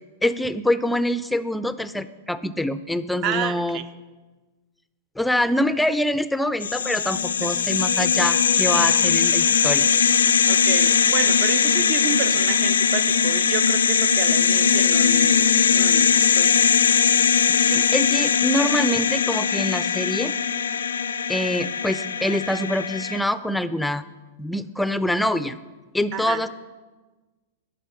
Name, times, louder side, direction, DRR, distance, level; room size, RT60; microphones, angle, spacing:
voice 1, 0.2-3.8 5.2-9.9 17.5-20.3 21.3-24.0 24.4-25.6 25.9-26.5, left 1 dB, 5° left, 14 dB, 0.4 m, -25 dB
voice 2, 3.2-3.9 7.4-7.5 10.5-16.5 26.1-26.4, right 9 dB, 45° right, 12 dB, 0.5 m, -30 dB
sound 1, 6.6-23.2, left 6 dB, 80° left, 0.4 m, -20 dB
10.5 x 4.2 x 6.9 m, 1.3 s
hypercardioid pair, 105°, 0 cm